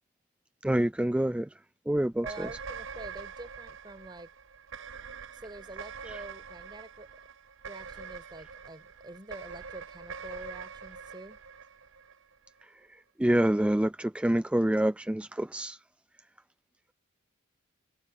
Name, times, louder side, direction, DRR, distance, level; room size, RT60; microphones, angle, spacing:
voice 1, 0.6-1.5 1.9-2.5 6.0-6.2 12.6-15.8, right 1 dB, 5° right, 0.3 m, -27 dB
voice 2, 2.2-4.3 5.3-7.1 7.6-11.4, right 2 dB, 20° right, 5.3 m, -46 dB
sound 1, 2.2-12.6, right 6 dB, 65° right, 0.9 m, -44 dB
head